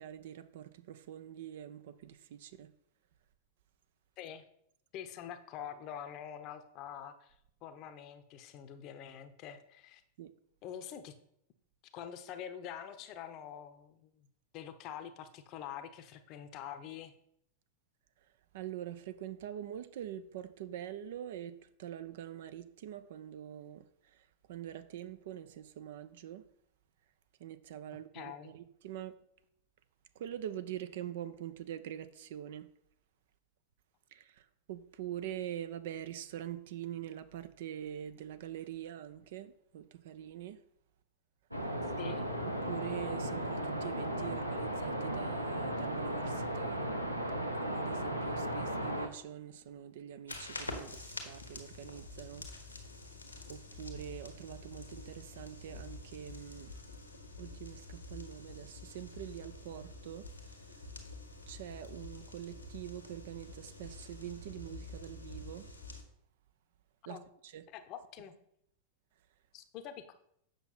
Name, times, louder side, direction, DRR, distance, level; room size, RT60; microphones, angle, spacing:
voice 1, 0.0-2.7 10.2-10.3 18.5-23.8 24.5-26.4 27.4-29.1 30.2-32.7 34.1-34.2 34.7-40.6 42.7-46.8 47.6-52.4 53.5-56.7 57.4-60.2 61.5-65.7 67.1-67.2 67.5-67.6, right 11 dB, 55° right, 0.5 m, -44 dB
voice 2, 4.9-7.3 7.6-10.0 10.6-11.2 11.9-14.3 14.5-17.1 28.1-28.5 42.0-42.3 67.0-67.3 67.7-68.4 69.5-70.1, left 9 dB, 40° left, 0.8 m, -45 dB
sound 1, 41.5-49.1, right 1 dB, 90° right, 0.8 m, -36 dB
sound 2, 50.3-66.0, left 2 dB, 85° left, 1.3 m, -47 dB
7.9 x 5.9 x 4.1 m
figure-of-eight pair, 90°, 0 cm